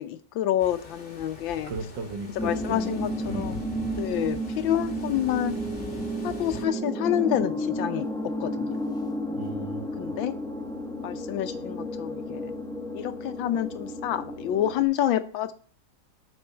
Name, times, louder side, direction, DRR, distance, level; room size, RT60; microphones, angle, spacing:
voice 1, 0.0-1.7 2.4-3.1 3.3-3.6 4.0-5.6 6.2-8.8 10.0-10.3 11.0-12.5 12.9-15.5, left 11 dB, 75° left, 11 dB, 1.4 m, -28 dB
sound 1, 0.6-6.6, left 4 dB, 30° left, 1.6 m, -42 dB
voice 2, 1.6-3.0 3.3-3.6 9.3-10.2, right 4 dB, 65° right, 5 dB, 1.9 m, -36 dB
sound 2, 2.4-14.9, equal, 5° left, 0.7 m, -32 dB
7.8 x 5.2 x 5.6 m, 0.42 s
omnidirectional pair, 2.2 m